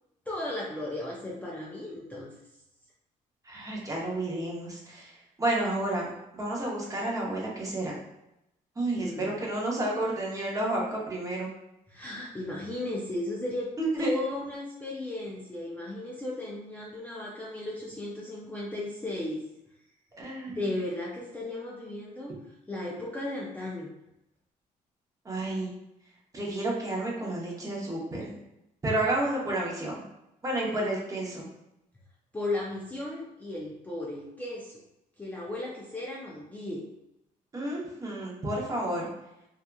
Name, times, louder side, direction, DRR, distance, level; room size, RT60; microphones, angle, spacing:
voice 1, 0.3-2.3 9.0-9.3 11.9-19.4 20.5-22.4 22.7-23.9 32.3-34.8 35.2-36.9, left 1 dB, 10° left, -5 dB, 0.4 m, -35 dB
voice 2, 3.4-8.0 8.8-11.5 13.8-14.1 20.2-20.6 25.2-25.7 26.3-28.4 28.8-30.0 30.4-31.5 37.5-39.1, right 1 dB, 25° right, -3 dB, 0.7 m, -31 dB
2.8 x 2.3 x 2.2 m, 0.86 s
cardioid pair, 120°, 14 cm